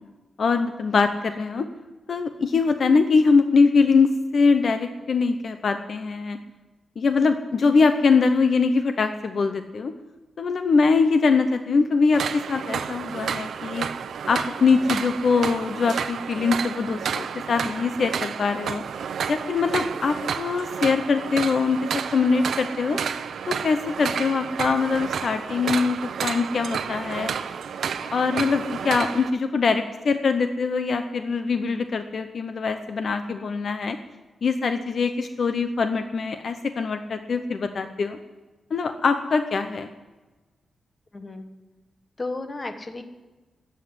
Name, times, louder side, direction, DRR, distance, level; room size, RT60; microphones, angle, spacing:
voice 1, 0.4-1.7 2.1-6.4 7.0-9.9 10.4-13.9 14.3-18.8 19.3-23.0 23.5-27.3 28.1-34.0 34.4-38.2 38.7-39.9, left 4 dB, 50° left, 8 dB, 0.7 m, -22 dB
sound 1, 12.1-29.3, right 7 dB, 90° right, 0.6 m, -31 dB
voice 2, 41.1-41.5 42.2-43.0, left 2 dB, 25° left, 7 dB, 1.2 m, -33 dB
13.5 x 8.3 x 9.7 m, 1.2 s
wide cardioid pair, 165°, 0 cm